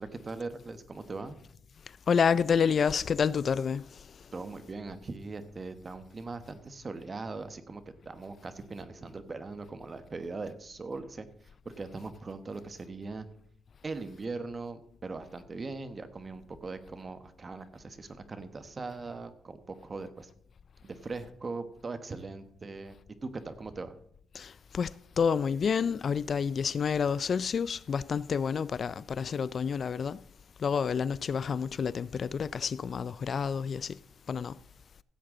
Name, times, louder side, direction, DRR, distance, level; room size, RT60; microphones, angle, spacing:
voice 1, 0.0-1.4 4.3-11.3 11.8-13.3 13.8-20.3 20.8-23.0 23.2-24.0, right 3 dB, 30° right, 1.2 m, -40 dB
voice 2, 2.1-3.8 24.3-30.2 30.6-34.0 34.3-34.5, left 6 dB, 50° left, 0.3 m, -29 dB
15.5 x 8.0 x 3.8 m
cardioid pair, 90°, 0 cm